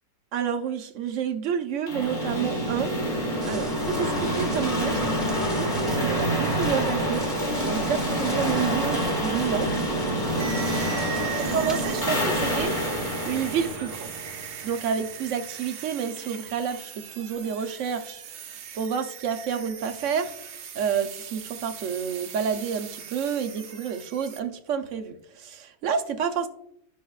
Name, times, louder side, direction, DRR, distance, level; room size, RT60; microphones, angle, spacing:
voice 1, 0.3-2.9 3.4-5.3 5.6-7.2 7.6-9.7 11.5-12.8 13.2-14.1 14.6-18.2 18.7-20.3 20.7-26.5, right 7 dB, 60° right, 7 dB, 0.9 m, -29 dB
sound 1, 1.9-14.7, equal, 30° left, 1.7 m, -27 dB
sound 2, 3.4-12.1, right 1 dB, ahead, 1.0 m, -42 dB
sound 3, 10.4-24.4, right 9 dB, 90° right, 1.3 m, -40 dB
13.0 x 5.6 x 2.3 m, 0.72 s
omnidirectional pair, 1.7 m